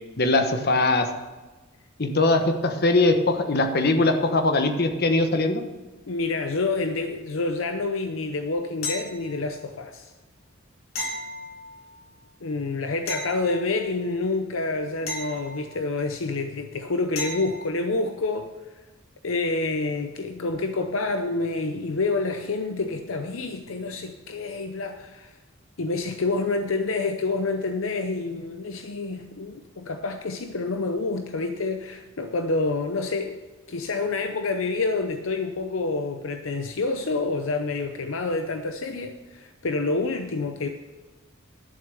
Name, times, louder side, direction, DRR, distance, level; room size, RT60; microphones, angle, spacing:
voice 1, 0.2-1.1 2.0-5.6, left 2 dB, 50° left, 7 dB, 1.1 m, -21 dB
voice 2, 6.1-10.1 12.4-18.5 19.2-25.4 25.8-33.4 33.7-40.7, left 3 dB, 70° left, 7 dB, 0.7 m, -28 dB
sound 1, 8.8-9.6 10.9-12.0 13.1-14.1 15.1-16.1 17.2-17.8 20.5-20.6, left 2 dB, 90° left, 2.2 m, -35 dB
12.0 x 7.0 x 6.9 m, 1.2 s
head